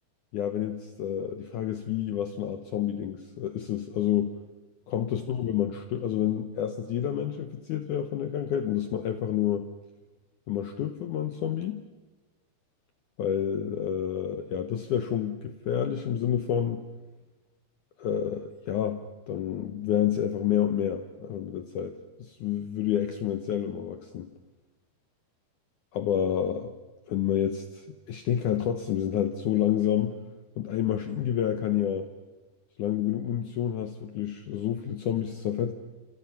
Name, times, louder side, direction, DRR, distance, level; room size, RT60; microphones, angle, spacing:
voice 1, 0.3-4.3 4.9-9.7 10.5-11.9 13.2-16.8 18.0-21.9 22.2-24.3 25.9-26.7 27.1-30.2 30.6-32.1 32.8-35.7, left 10 dB, 85° left, 9 dB, 1.7 m, -29 dB
28.0 x 27.0 x 5.9 m, 1.2 s
omnidirectional pair, 5.0 m